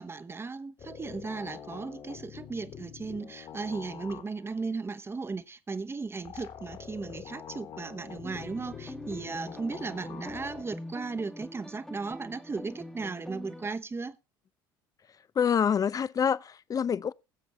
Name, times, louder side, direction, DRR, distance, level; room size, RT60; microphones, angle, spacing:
voice 1, 0.0-14.2, right 4 dB, 20° right, 1.0 m, -36 dB
sound 1, 0.8-4.6 6.2-10.6, left 8 dB, 50° left, 2.4 m, -45 dB
sound 2, 8.2-13.7, left 1 dB, 5° left, 1.1 m, -44 dB
voice 2, 15.3-17.1, left 7 dB, 30° left, 0.5 m, -26 dB
20.5 x 7.5 x 3.0 m
hypercardioid pair, 75°, 12 cm